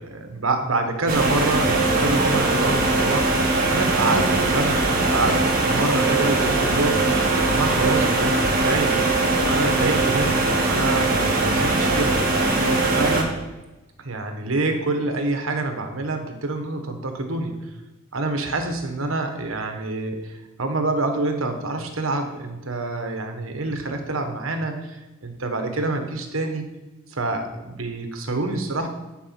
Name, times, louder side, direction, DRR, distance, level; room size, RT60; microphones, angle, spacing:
voice 1, 0.1-3.3 3.7-7.0 7.4-9.0 9.4-12.2 12.6-13.3 14.0-17.6 18.1-26.6 27.1-28.9, right 2 dB, 80° right, 5 dB, 1.3 m, -26 dB
sound 1, 1.1-13.2, right 2 dB, 45° right, 1.8 m, -21 dB
10.0 x 4.9 x 5.9 m, 1.1 s
head